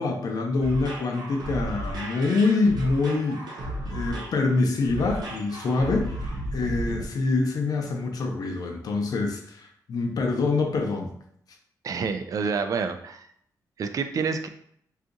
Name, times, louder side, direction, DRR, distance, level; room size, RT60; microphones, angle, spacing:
voice 1, 0.0-3.4 3.9-6.1 6.5-11.1, left 3 dB, 65° left, 3 dB, 0.6 m, -25 dB
sound 1, 0.6-7.0, right 1 dB, 75° right, 0.8 m, -34 dB
voice 2, 11.8-13.3 13.8-14.5, right 5 dB, 55° right, 8 dB, 0.3 m, -28 dB
2.7 x 2.4 x 3.8 m, 0.68 s
wide cardioid pair, 130°, 7 cm